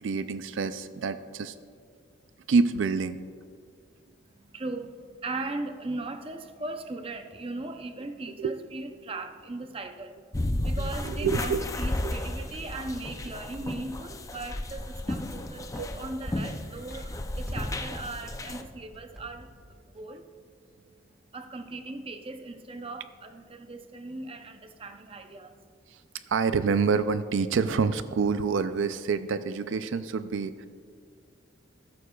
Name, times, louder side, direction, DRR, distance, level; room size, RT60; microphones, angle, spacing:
voice 1, 0.0-1.6 2.5-3.2 8.4-8.6 11.0-11.7 12.0-12.1 15.8-16.1 25.9-26.0 26.3-30.7, right 5 dB, 75° right, 12 dB, 0.4 m, -27 dB
voice 2, 4.3-10.3 10.6-19.7 19.9-20.3 21.3-25.6, right 2 dB, 30° right, 7 dB, 0.6 m, -38 dB
sound 1, 10.3-18.6, left 1 dB, 15° left, 0.4 m, -33 dB
sound 2, 12.5-20.1, equal, ahead, 1.4 m, -50 dB
14.5 x 13.0 x 2.3 m, 2.1 s
head